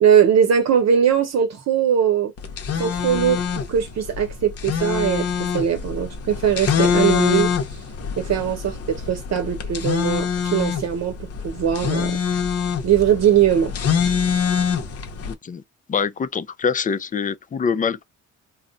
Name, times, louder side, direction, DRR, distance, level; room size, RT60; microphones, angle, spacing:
voice 1, 0.0-2.3 2.8-7.5 8.2-12.2 12.8-13.7, right 8 dB, 60° right, 0.8 m, -20 dB
sound 1, 2.4-15.3, left 7 dB, 50° left, 0.8 m, -24 dB
voice 2, 15.2-15.6 15.9-18.0, left 6 dB, 25° left, 0.4 m, -24 dB
2.4 x 2.1 x 3.7 m
cardioid pair, 90°, 30 cm